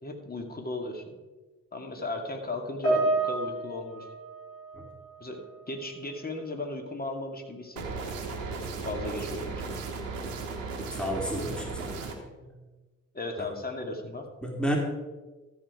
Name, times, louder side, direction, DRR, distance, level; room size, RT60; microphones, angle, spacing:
voice 1, 0.0-1.2 1.7-4.1 5.2-5.4 5.7-8.0 8.8-9.7 13.1-14.3, left 2 dB, 25° left, 3 dB, 2.3 m, -36 dB
Piano, 2.8-5.5 5.7-6.1 6.9-7.0, right 2 dB, 80° left, 3.9 m, -30 dB
sound 1, 7.8-12.1, right 4 dB, 85° right, 1.2 m, -36 dB
voice 2, 10.9-12.1 12.4-12.5 13.4-13.5 14.4-14.8, equal, ahead, 0 dB, 2.6 m, -32 dB
13.5 x 7.2 x 4.8 m, 1.3 s
hypercardioid pair, 40°, 38 cm